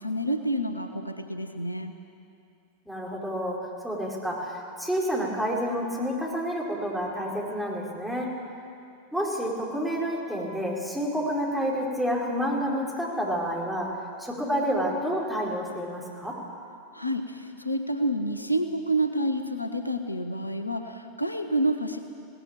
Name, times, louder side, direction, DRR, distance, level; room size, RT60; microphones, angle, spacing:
voice 1, 0.0-1.9 16.9-22.0, right 1 dB, 85° left, 8 dB, 1.1 m, -28 dB
voice 2, 2.9-8.3 9.1-13.9 14.2-16.4, equal, ahead, -4 dB, 4.7 m, -29 dB
19.0 x 18.0 x 8.8 m, 2.5 s
figure-of-eight pair, 90°, 0 cm